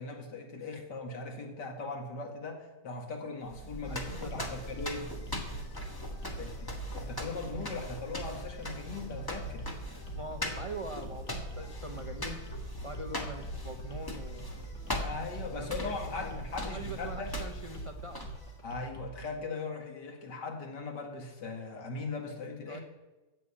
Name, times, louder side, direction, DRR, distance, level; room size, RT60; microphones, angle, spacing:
voice 1, 0.0-5.1 6.4-9.7 15.0-17.3 18.6-22.8, left 3 dB, 85° left, 2 dB, 2.6 m, -39 dB
sound 1, 3.5-18.6, left 1 dB, 15° left, 1.3 m, -40 dB
sound 2, 3.8-19.2, right 2 dB, 45° left, 2.5 m, -46 dB
voice 2, 3.9-4.5 6.4-6.5 10.1-12.4 12.8-14.5 15.5-15.9 16.2-16.3 16.6-18.2 22.7-22.8, right 2 dB, 40° right, 4 dB, 0.4 m, -43 dB
15.0 x 6.2 x 8.6 m, 1.1 s
omnidirectional pair, 1.8 m